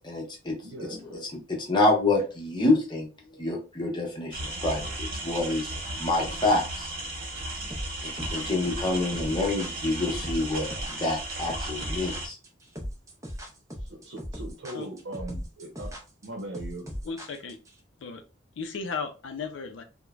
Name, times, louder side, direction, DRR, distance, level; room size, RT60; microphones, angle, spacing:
voice 1, 0.0-0.6 0.9-3.1 3.3-5.7 6.0-6.9 8.0-12.4, left 2 dB, 25° left, 0.8 m, -27 dB
voice 2, 0.6-1.0 13.8-15.9 16.2-16.9, right 1 dB, 90° right, 0.7 m, -39 dB
sound 1, 4.3-12.3, right 1 dB, 55° right, 1.0 m, -35 dB
sound 2, 7.7-17.7, equal, 15° right, 0.5 m, -38 dB
voice 3, 17.0-17.6 18.0-18.2 18.6-19.8, left 5 dB, 90° left, 0.4 m, -35 dB
3.1 x 2.1 x 2.3 m
head